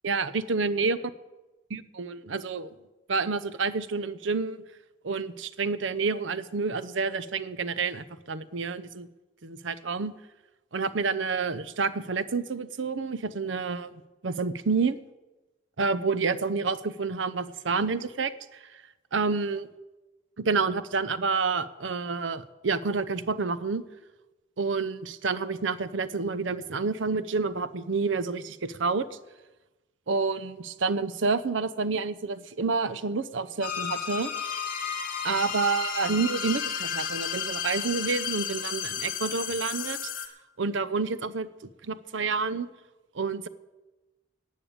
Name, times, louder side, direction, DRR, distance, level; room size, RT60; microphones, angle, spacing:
voice 1, 0.0-1.0 1.7-2.7 3.1-4.6 5.0-9.1 9.4-10.1 10.7-13.9 14.2-15.0 15.8-18.6 19.1-19.7 20.4-23.8 24.6-29.1 30.1-34.3 35.2-40.1 40.6-41.5 41.8-42.7 43.1-43.5, right 4 dB, 85° right, 15 dB, 0.7 m, -29 dB
sound 1, 33.6-40.3, left 7 dB, 50° left, 1.7 m, -32 dB
12.0 x 8.5 x 8.8 m, 1.1 s
head